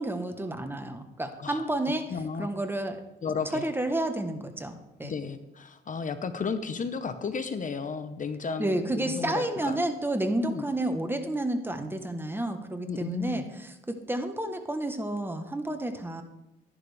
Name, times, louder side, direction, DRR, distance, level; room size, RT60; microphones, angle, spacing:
voice 1, 0.0-3.0 3.5-5.1 8.6-16.2, right 1 dB, 10° right, 6 dB, 1.3 m, -31 dB
voice 2, 2.1-2.5 3.2-3.7 5.0-9.8 10.4-10.7 12.9-13.4, left 5 dB, 40° left, 10 dB, 0.9 m, -33 dB
12.5 x 11.0 x 3.5 m, 0.98 s
cardioid pair, 90°, 20 cm